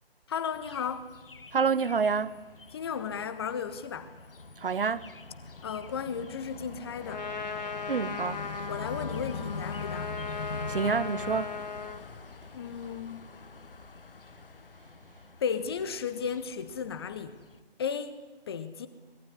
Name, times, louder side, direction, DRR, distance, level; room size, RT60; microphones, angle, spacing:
voice 1, 0.3-1.1 2.7-4.1 5.6-7.3 8.7-10.1 12.5-13.3 15.4-17.4 17.8-18.9, left 7 dB, 25° left, 1.0 m, -34 dB
sound 1, 0.5-17.6, left 3 dB, 60° left, 1.5 m, -43 dB
voice 2, 1.5-2.3 4.6-5.1 7.9-8.4 10.7-11.5, right 5 dB, 60° right, 1.2 m, -28 dB
Trumpet, 7.0-12.1, left 5 dB, 45° left, 2.1 m, -37 dB
25.0 x 19.0 x 9.9 m
figure-of-eight pair, 140°, 31 cm